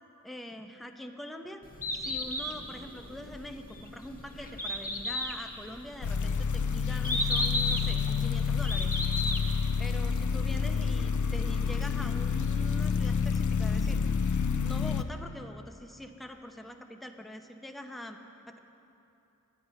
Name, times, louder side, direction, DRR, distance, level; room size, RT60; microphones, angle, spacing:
voice 1, 0.2-1.6 1.9-9.0 9.8-14.0 14.6-18.2 18.5-18.6, equal, ahead, 5 dB, 0.6 m, -43 dB
Bird, 1.6-9.6, left 1 dB, 25° left, 1.1 m, -34 dB
sound 1, 6.0-15.0, left 6 dB, 65° left, 0.5 m, -28 dB
9.8 x 9.1 x 5.6 m, 2.8 s
wide cardioid pair, 55°, 33 cm